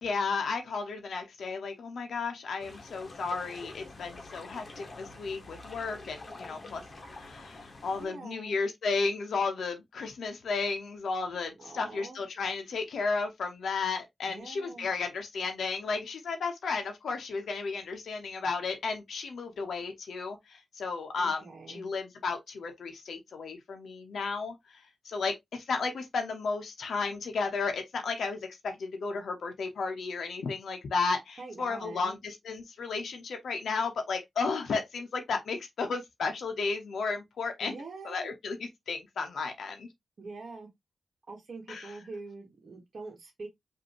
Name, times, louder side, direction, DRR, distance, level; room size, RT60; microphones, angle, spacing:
voice 1, 0.0-6.8 7.1-37.7 38.0-39.9 41.7-42.0, left 4 dB, 75° left, 0.8 m, -33 dB
sound 1, 2.6-8.1, left 2 dB, 40° left, 1.1 m, -47 dB
voice 2, 8.0-8.6 11.6-12.2 14.3-14.9 21.1-21.9 31.4-32.2 37.6-38.3 40.2-40.7 41.3-43.5, right 3 dB, 50° right, 1.3 m, -44 dB
5.1 x 2.7 x 2.9 m
wide cardioid pair, 120°, 0 cm